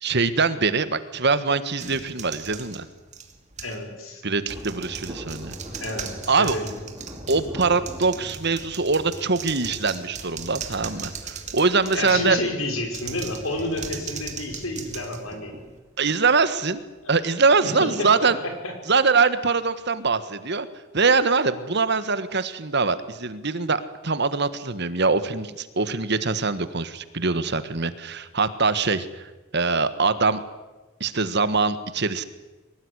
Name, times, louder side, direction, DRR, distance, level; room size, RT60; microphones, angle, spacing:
voice 1, 0.0-2.8 4.2-5.6 6.3-6.5 7.3-12.4 16.0-16.8 17.1-18.4 18.9-20.7 20.9-29.3 29.5-30.4 31.0-32.2, right 4 dB, 55° right, 13 dB, 1.5 m, -23 dB
sound 1, 1.8-3.8 4.4-12.4 12.9-15.8, right 6 dB, 35° right, 2.7 m, -38 dB
voice 2, 3.6-4.2 5.8-6.8 11.9-15.6 17.0-17.1 17.6-18.7, left 1 dB, 90° left, 4 dB, 5.8 m, -30 dB
Thunder, 4.5-16.5 16.7-16.8, equal, 15° right, 4.2 m, -44 dB
23.5 x 19.5 x 9.9 m, 1.1 s
head